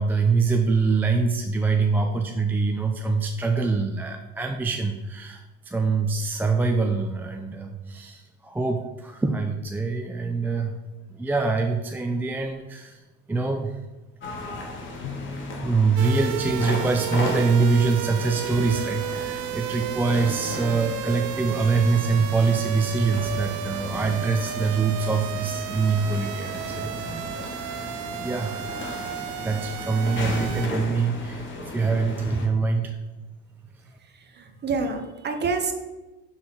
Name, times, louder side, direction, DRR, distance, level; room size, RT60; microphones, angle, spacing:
voice 1, 0.0-10.8 11.1-13.8 15.6-28.7 29.4-33.0, right 4 dB, 5° right, 3 dB, 0.4 m, -24 dB
sound 1, 14.2-32.5, left 2 dB, 35° left, 1.4 m, -36 dB
Bowed string instrument, 15.0-17.7, left 4 dB, 75° left, 0.8 m, -41 dB
sound 2, 16.0-30.7, right 13 dB, 65° right, 0.5 m, -33 dB
voice 2, 34.0-35.7, right 4 dB, 30° right, 5 dB, 1.0 m, -28 dB
5.6 x 3.9 x 5.8 m, 1.1 s
cardioid pair, 115°, 33 cm